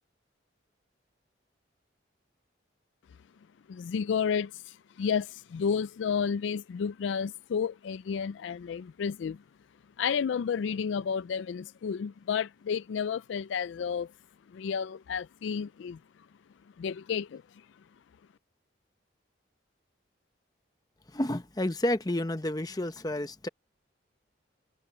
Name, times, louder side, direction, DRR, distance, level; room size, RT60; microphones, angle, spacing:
voice 1, 3.7-9.4 10.0-14.1 14.5-16.0 16.8-17.4, left 6 dB, 70° left, 0.3 m, -31 dB
voice 2, 21.1-23.5, left 1 dB, 20° left, 0.8 m, -30 dB
head